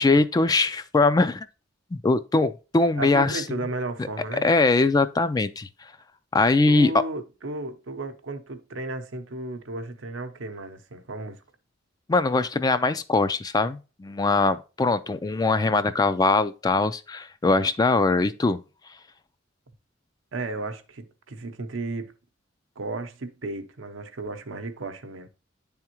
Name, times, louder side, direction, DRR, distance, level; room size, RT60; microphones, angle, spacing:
voice 1, 0.0-1.5 1.9-3.4 4.4-5.7 6.3-6.9 12.1-18.6, left 3 dB, 20° left, 0.3 m, -22 dB
voice 2, 3.0-4.5 6.7-11.4 20.3-22.1 22.8-25.3, right 2 dB, 90° right, 0.7 m, -34 dB
9.7 x 3.6 x 2.9 m
head